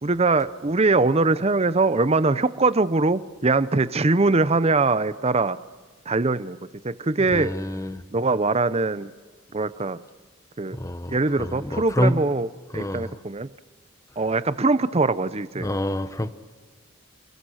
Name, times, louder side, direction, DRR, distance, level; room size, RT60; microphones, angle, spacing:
voice 1, 0.0-5.6 6.1-6.6 6.8-7.5 8.1-9.1 9.5-10.0 10.6-10.8 11.1-12.5 12.7-13.5 14.2-15.7, right 3 dB, 30° right, 0.7 m, -22 dB
voice 2, 7.3-8.0 10.7-12.2 12.7-13.1 15.6-16.3, left 1 dB, 15° left, 1.0 m, -27 dB
29.5 x 22.0 x 6.4 m
head